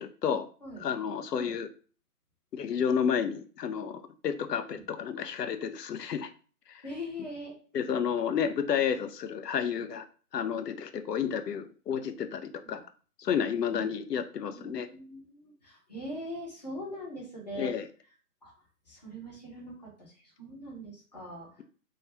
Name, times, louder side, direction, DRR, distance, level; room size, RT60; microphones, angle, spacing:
voice 1, 0.0-0.5 0.8-1.7 2.5-6.3 6.7-6.8 7.7-10.1 10.3-12.8 13.2-14.9 17.6-17.9, left 7 dB, 85° left, 9 dB, 0.6 m, -31 dB
voice 2, 6.8-7.6 12.6-12.8 13.6-13.9 14.5-17.7 18.4-18.5 18.9-20.1 20.4-21.6, equal, 25° left, -4 dB, 0.7 m, -42 dB
2.3 x 2.3 x 2.9 m, 0.40 s
figure-of-eight pair, 160°, 47 cm